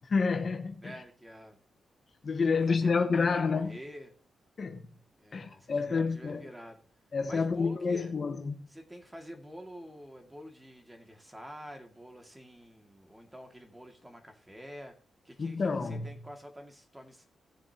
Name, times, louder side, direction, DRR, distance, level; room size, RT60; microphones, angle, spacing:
voice 1, 0.0-0.9 2.2-3.8 4.6-4.8 5.3-6.4 7.1-8.7 15.4-16.1, left 4 dB, 45° left, 1.3 m, -29 dB
voice 2, 0.8-1.6 2.5-4.1 5.2-6.8 7.3-8.1 8.7-15.0 15.2-17.3, equal, 10° right, 2.1 m, -47 dB
18.5 x 7.1 x 2.9 m
cardioid pair, 100°, 0 cm